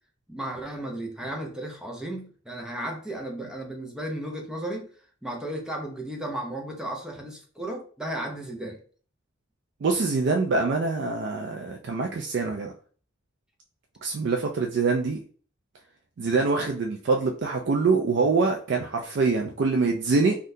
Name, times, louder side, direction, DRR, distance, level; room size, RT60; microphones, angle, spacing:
voice 1, 0.3-4.9 5.2-8.8, right 1 dB, 5° right, 1 dB, 0.5 m, -34 dB
voice 2, 9.8-12.7 14.0-15.2 16.2-20.4, right 4 dB, 55° right, 1 dB, 0.3 m, -24 dB
3.6 x 2.3 x 2.6 m, 0.43 s
head